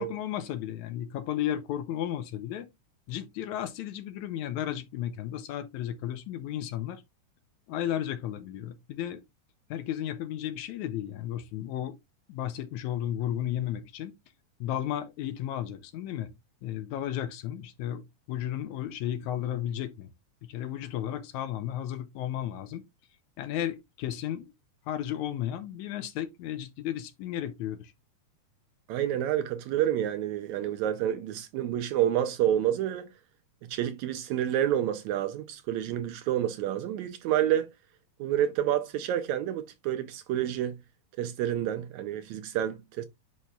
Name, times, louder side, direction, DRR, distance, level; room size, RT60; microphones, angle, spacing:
voice 1, 0.0-2.7 3.1-7.0 7.7-9.2 9.7-12.0 12.3-14.1 14.6-16.3 16.6-18.0 18.3-20.1 20.4-22.8 23.4-24.5 24.9-27.9, left 11 dB, 75° left, 2.0 m, -34 dB
voice 2, 28.9-33.1 33.6-37.7 38.2-40.8 41.2-43.1, right 11 dB, 75° right, 1.8 m, -29 dB
10.0 x 4.6 x 2.3 m
omnidirectional pair, 3.6 m